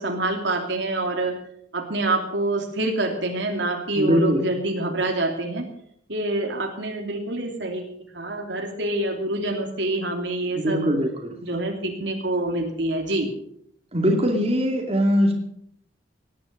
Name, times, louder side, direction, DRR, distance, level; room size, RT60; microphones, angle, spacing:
voice 1, 0.0-1.4 1.7-5.7 6.1-10.9 11.4-13.3, right 2 dB, 70° right, 2 dB, 2.8 m, -26 dB
voice 2, 4.0-4.4 10.5-11.3 13.9-15.3, equal, 30° right, 1 dB, 2.6 m, -21 dB
18.5 x 10.5 x 6.6 m, 0.69 s
head